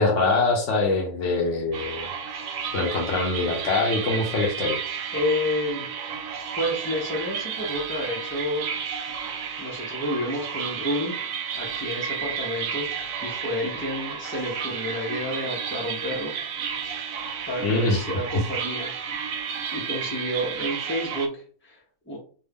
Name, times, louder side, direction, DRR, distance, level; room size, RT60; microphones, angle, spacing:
voice 1, 0.0-2.1 2.7-4.8 17.6-18.0, left 3 dB, 60° left, -1 dB, 0.9 m, -23 dB
sound 1, 1.7-21.3, right 7 dB, 65° right, 0.9 m, -32 dB
voice 2, 5.1-5.9 6.6-8.7 9.6-11.2 11.6-12.9 13.2-16.3 17.5-22.2, left 1 dB, 15° left, -3 dB, 0.4 m, -30 dB
3.4 x 2.3 x 3.4 m, 0.42 s
omnidirectional pair, 1.7 m